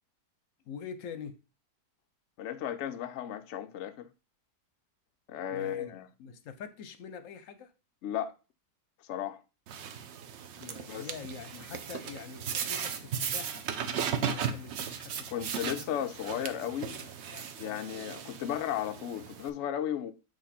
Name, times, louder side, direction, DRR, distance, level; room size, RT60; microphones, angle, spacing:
voice 1, 0.7-1.4 5.5-5.9 6.2-7.7 10.6-13.6 14.3-15.9 16.2-17.9, left 6 dB, 60° left, 0.9 m, -45 dB
voice 2, 2.4-4.1 5.3-6.1 8.0-8.3 9.0-9.4 10.9-11.1 15.3-17.0 17.6-20.1, left 10 dB, 85° left, 0.6 m, -35 dB
sound 1, 9.7-19.5, right 7 dB, 65° right, 0.7 m, -36 dB
7.8 x 3.2 x 4.2 m
omnidirectional pair, 1.8 m